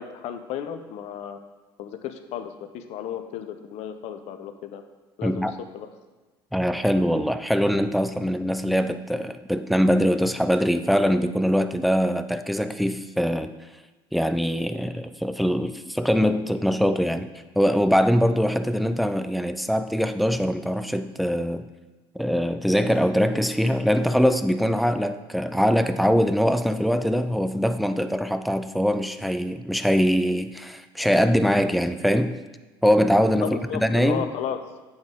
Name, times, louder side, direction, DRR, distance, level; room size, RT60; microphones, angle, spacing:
voice 1, 0.0-1.4 1.8-4.8 5.2-5.9 33.4-34.7, left 9 dB, 65° left, 8 dB, 0.6 m, -34 dB
voice 2, 5.2-5.5 6.5-13.5 14.1-21.7 22.1-32.4 32.8-34.3, equal, ahead, 10 dB, 0.4 m, -22 dB
8.7 x 3.9 x 3.6 m, 1.2 s
hypercardioid pair, 75°, 12 cm